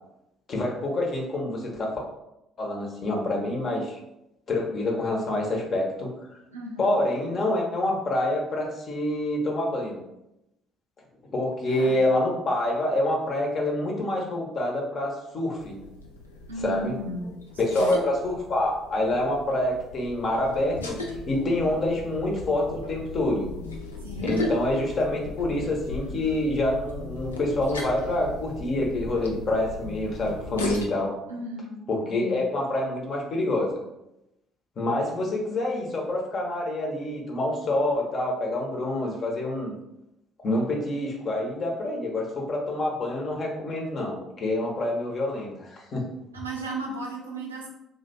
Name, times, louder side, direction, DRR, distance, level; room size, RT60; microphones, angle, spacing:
voice 1, 0.5-2.0 2.6-4.0 4.5-6.1 6.8-10.0 11.3-15.8 16.6-17.0 17.6-21.0 21.3-23.5 24.2-31.2 31.9-33.8 34.8-39.7 40.4-46.0, left 1 dB, 45° left, 0 dB, 0.9 m, -27 dB
voice 2, 6.5-6.9 11.7-12.0 16.5-17.3 17.6-18.0 24.0-24.4 31.3-32.4 46.3-47.7, right 2 dB, 85° right, -1 dB, 0.5 m, -35 dB
sound 1, 15.6-30.9, left 2 dB, 85° left, 0.4 m, -37 dB
2.7 x 2.2 x 4.1 m, 0.87 s
figure-of-eight pair, 50°, 0 cm